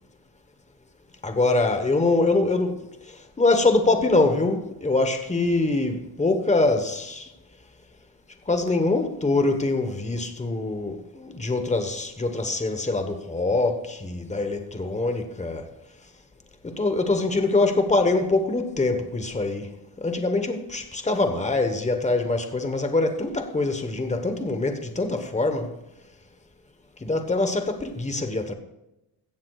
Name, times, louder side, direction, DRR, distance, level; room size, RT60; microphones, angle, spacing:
voice 1, 1.2-2.8 3.4-7.3 8.5-15.7 16.6-19.7 20.0-25.7 27.0-28.5, left 2 dB, 15° left, 1.2 m, -24 dB
16.0 x 14.5 x 2.4 m
wide cardioid pair, 125°, 44 cm